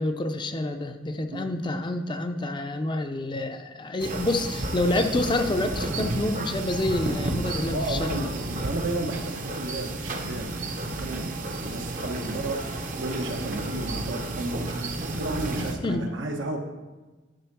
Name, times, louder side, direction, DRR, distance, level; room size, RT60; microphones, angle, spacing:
voice 1, 0.0-8.3 15.8-16.1, left 2 dB, 25° left, 7 dB, 0.5 m, -28 dB
sound 1, 4.0-15.7, right 2 dB, 40° right, 0.7 m, -32 dB
voice 2, 7.6-16.6, right 2 dB, 85° right, 2 dB, 1.2 m, -33 dB
10.5 x 3.6 x 6.0 m, 1.2 s
head